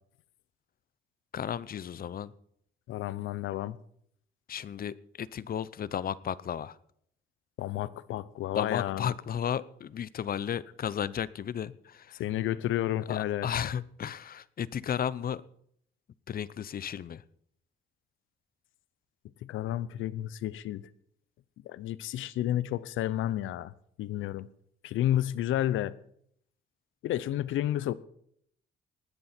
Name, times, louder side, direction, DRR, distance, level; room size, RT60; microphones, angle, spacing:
voice 1, 1.3-2.3 4.5-6.8 8.5-12.2 13.1-15.4 16.3-17.2, left 9 dB, 50° left, 0.7 m, -34 dB
voice 2, 2.9-3.8 7.6-9.1 12.2-13.5 19.4-20.8 21.6-24.5 24.8-26.0 27.0-27.9, left 13 dB, 85° left, 0.7 m, -31 dB
19.0 x 11.0 x 4.4 m
cardioid pair, 90°, 20 cm